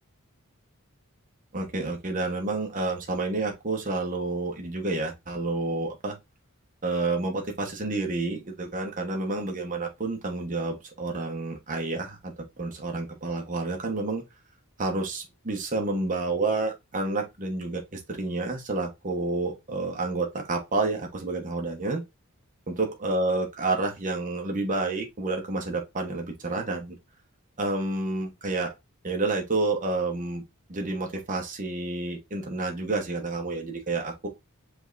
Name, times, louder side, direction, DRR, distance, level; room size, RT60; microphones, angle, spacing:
voice 1, 1.5-6.2 6.8-12.3 12.6-14.2 14.8-22.0 22.7-27.0 27.6-28.7 29.0-30.4 30.7-34.3, right 2 dB, 35° right, 1.1 m, -29 dB
5.3 x 3.5 x 2.5 m
head